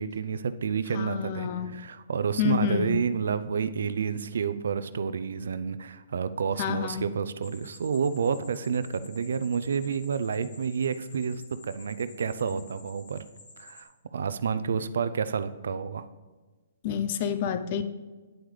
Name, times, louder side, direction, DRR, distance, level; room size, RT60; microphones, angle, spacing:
voice 1, 0.0-13.2 13.6-16.0, right 6 dB, 75° right, 13 dB, 0.5 m, -29 dB
voice 2, 0.9-1.7 2.4-3.0 6.6-7.1 16.8-17.8, left 9 dB, 45° left, 11 dB, 0.6 m, -28 dB
sound 1, 7.4-13.8, left 3 dB, 65° left, 2.2 m, -52 dB
9.3 x 8.0 x 3.3 m, 1.3 s
hypercardioid pair, 140°, 0 cm